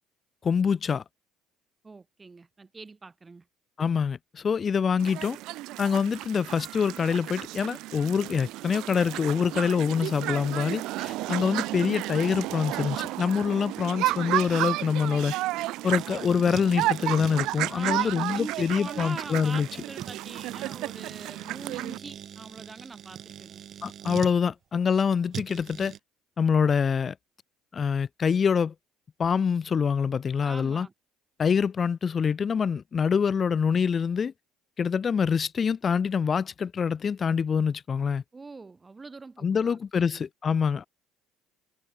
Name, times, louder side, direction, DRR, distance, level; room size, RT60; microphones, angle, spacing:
voice 1, 0.4-1.0 3.8-5.4 5.8-15.3 15.8-19.7 23.8-25.9 26.4-27.1 27.7-28.7 29.2-30.9 31.4-34.3 34.8-38.2 39.4-40.9, left 6 dB, 35° left, 0.8 m, -25 dB
voice 2, 1.8-3.5 17.7-23.6 30.4-30.9 38.3-40.2, right 4 dB, 20° right, 4.7 m, -43 dB
sound 1, 5.0-22.0, right 18 dB, 75° right, 0.3 m, -32 dB
sound 2, 16.0-24.4 25.3-26.0, right 9 dB, 50° right, 1.1 m, -43 dB
cardioid pair, 105°, 0 cm